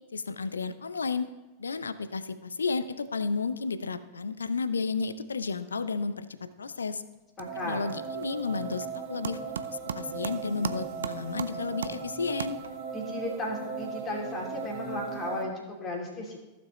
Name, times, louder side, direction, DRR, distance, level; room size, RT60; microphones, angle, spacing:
voice 1, 0.1-1.3 1.6-7.0 7.6-12.6, left 4 dB, 75° left, 13 dB, 0.5 m, -32 dB
sound 1, 6.5-6.9 7.1-13.0, right 7 dB, 65° right, 0.5 m, -40 dB
voice 2, 7.4-7.8 12.9-16.4, left 2 dB, 25° left, -1 dB, 2.6 m, -35 dB
sound 2, 7.4-15.4, right 6 dB, 45° right, 1.6 m, -38 dB
15.0 x 7.1 x 3.1 m, 1.1 s
figure-of-eight pair, 90°, 0 cm